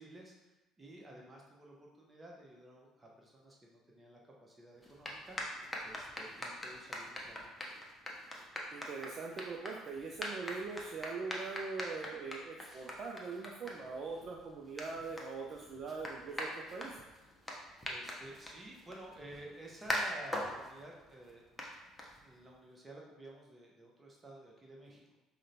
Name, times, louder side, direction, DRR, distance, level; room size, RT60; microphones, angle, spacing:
voice 1, 0.0-7.6 17.8-21.5 22.2-25.2, right 1 dB, 20° right, -2 dB, 0.8 m, -53 dB
sound 1, 4.8-22.6, left 1 dB, 10° left, 0.7 m, -44 dB
voice 2, 8.7-17.0, right 4 dB, 45° right, -1 dB, 0.3 m, -42 dB
4.9 x 2.1 x 2.7 m, 1.1 s
figure-of-eight pair, 55°, 0 cm